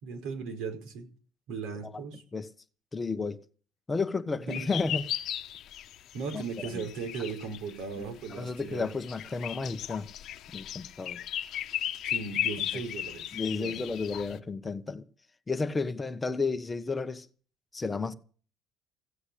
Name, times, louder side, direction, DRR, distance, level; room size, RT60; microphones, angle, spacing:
voice 1, 0.0-1.1 1.5-2.2 4.4-4.7 6.1-8.9 12.0-13.8, right 5 dB, 80° right, 4.9 m, -37 dB
voice 2, 2.9-3.4 3.9-5.0 6.3-6.4 8.3-10.1 10.5-11.2 13.3-15.0 15.5-17.3 17.7-18.1, left 4 dB, 20° left, 1.2 m, -32 dB
sound 1, 4.5-14.4, left 11 dB, 60° left, 1.1 m, -36 dB
16.0 x 8.2 x 8.5 m
cardioid pair, 110°, 0 cm